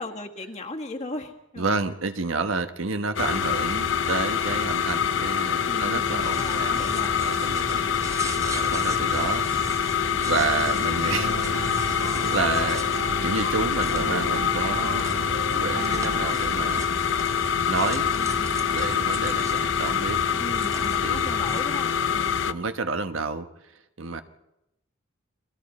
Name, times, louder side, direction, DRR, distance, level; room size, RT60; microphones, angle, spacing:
voice 1, 0.0-1.8 5.7-7.2 18.1-18.5 20.4-22.4, left 2 dB, 35° left, 3 dB, 1.8 m, -37 dB
voice 2, 1.6-6.9 7.2-9.8 10.2-11.3 12.3-12.9 13.2-15.2 15.5-16.9 17.7-18.1 18.7-20.2 21.0-21.3 22.5-23.5 24.0-24.2, right 4 dB, 80° right, 8 dB, 1.1 m, -30 dB
sound 1, 3.2-22.5, left 7 dB, 65° left, 0.7 m, -25 dB
sound 2, 6.2-21.6, right 2 dB, 15° right, 0.7 m, -38 dB
sound 3, 11.1-16.3, right 3 dB, 60° right, 0.8 m, -35 dB
30.0 x 21.5 x 4.3 m, 0.89 s
head